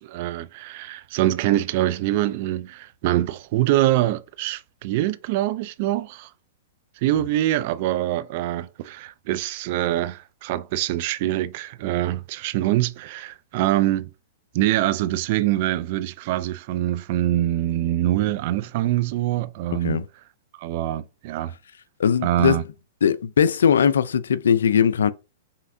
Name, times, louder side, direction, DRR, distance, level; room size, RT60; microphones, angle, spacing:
voice 1, 0.0-6.3 7.0-14.1 14.5-20.0 20.6-21.5 22.2-22.6, right 14 dB, 50° right, 0.4 m, -24 dB
voice 2, 22.0-22.6 23.0-25.1, left 7 dB, 85° left, 0.4 m, -19 dB
5.6 x 3.3 x 2.7 m
hypercardioid pair, 135°, 0 cm